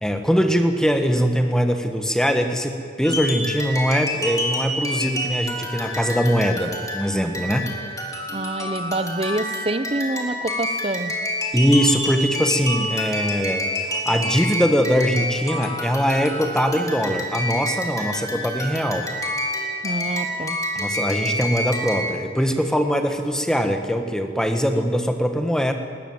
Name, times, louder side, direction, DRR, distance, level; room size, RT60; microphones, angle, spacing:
voice 1, 0.0-7.7 11.5-19.1 20.7-25.7, equal, 5° left, 6 dB, 1.5 m, -22 dB
sound 1, 3.0-22.1, equal, 20° left, 3.2 m, -28 dB
voice 2, 8.3-11.1 19.8-20.6, right 2 dB, 30° right, 11 dB, 1.0 m, -27 dB
20.0 x 20.0 x 8.0 m, 2.6 s
head